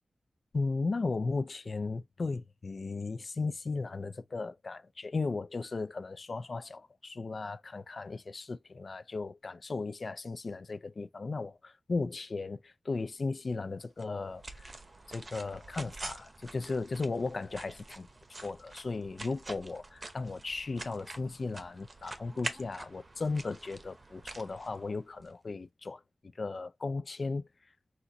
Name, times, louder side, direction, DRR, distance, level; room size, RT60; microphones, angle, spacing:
voice 1, 0.5-14.8 15.1-18.1 18.4-26.0 26.3-27.5, left 3 dB, 60° left, 0.4 m, -36 dB
sound 1, 14.0-25.3, right 2 dB, 45° right, 0.8 m, -46 dB
4.3 x 2.4 x 3.9 m
wide cardioid pair, 70°, 0 cm